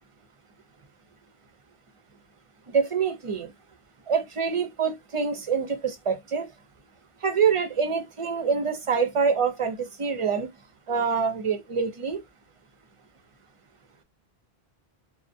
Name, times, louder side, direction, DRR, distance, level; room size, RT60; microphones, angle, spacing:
voice 1, 2.7-3.5 4.1-6.5 7.2-10.5 10.9-12.2, right 6 dB, 45° right, 0.5 m, -26 dB
2.4 x 2.0 x 2.5 m
omnidirectional pair, 1.1 m